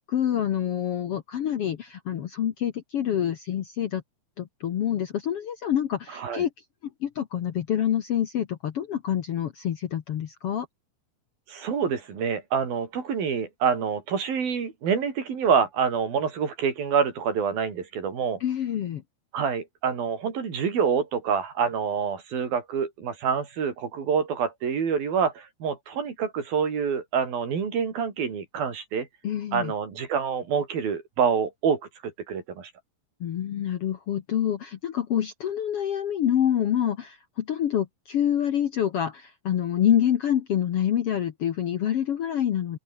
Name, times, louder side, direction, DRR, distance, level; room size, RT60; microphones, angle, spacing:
voice 1, 0.0-4.0 4.4-6.5 7.0-10.7 18.4-19.0 29.2-29.7 33.2-42.8, left 10 dB, 60° left, 1.5 m, -27 dB
voice 2, 6.1-6.4 11.5-18.4 19.3-29.1 29.5-32.7, right 6 dB, 80° right, 5.9 m, -27 dB
open air
omnidirectional pair, 4.1 m